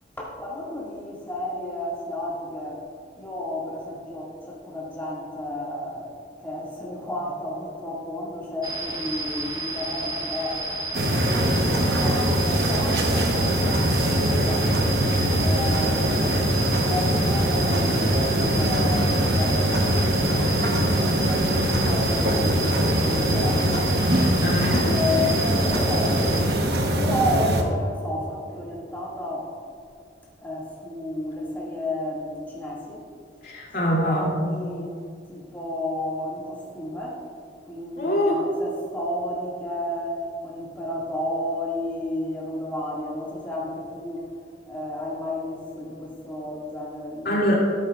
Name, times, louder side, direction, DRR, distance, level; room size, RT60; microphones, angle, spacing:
voice 1, 0.2-2.9 3.2-6.1 6.4-10.6 11.1-14.7 15.3-23.9 24.8-26.4 27.0-29.5 30.4-33.0 33.8-35.0 35.3-37.2 37.7-44.2 44.7-47.6, left 1 dB, 10° left, -6 dB, 2.1 m, -32 dB
sound 1, 8.6-26.4, right 2 dB, 20° right, 1.0 m, -32 dB
sound 2, 10.9-27.6, right 1 dB, 60° right, 1.1 m, -22 dB
voice 2, 24.4-24.9 33.4-34.3 38.0-38.4 47.2-47.6, equal, 50° left, -5 dB, 2.8 m, -23 dB
13.5 x 13.0 x 2.5 m, 2.3 s
head